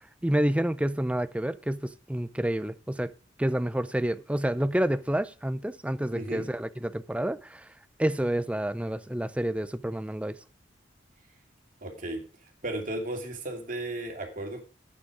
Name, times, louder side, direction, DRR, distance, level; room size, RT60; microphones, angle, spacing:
voice 1, 0.2-3.1 3.4-7.7 8.0-10.4, right 1 dB, 5° right, 0.5 m, -29 dB
voice 2, 6.1-6.5 11.8-12.2 12.6-14.6, right 1 dB, 45° right, 2.6 m, -34 dB
9.7 x 9.0 x 4.9 m
head